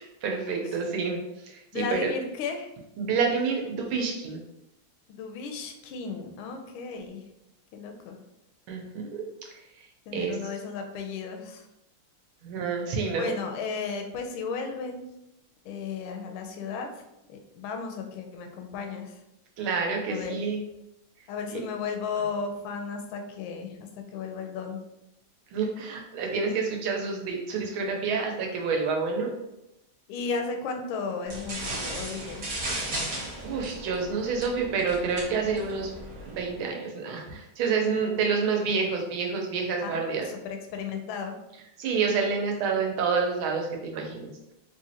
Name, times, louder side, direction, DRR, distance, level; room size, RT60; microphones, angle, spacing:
voice 1, 0.2-1.2 1.5-2.1 3.0-4.4 8.7-9.2 10.1-10.4 12.4-13.3 19.6-20.6 21.5-21.6 25.5-29.3 32.9-35.9 36.3-40.3 41.8-44.5, right 5 dB, 75° right, 1 dB, 1.5 m, -28 dB
voice 2, 1.7-2.7 5.1-7.2 7.7-8.2 10.1-11.7 13.2-15.1 15.6-16.9 17.3-19.2 20.1-20.3 21.3-23.8 24.1-24.8 30.1-32.5 39.8-40.0 40.4-41.3, left 5 dB, 75° left, 4 dB, 1.3 m, -34 dB
sound 1, 31.3-36.5, right 1 dB, 50° right, 1.3 m, -36 dB
3.7 x 3.0 x 2.8 m, 0.87 s
omnidirectional pair, 2.4 m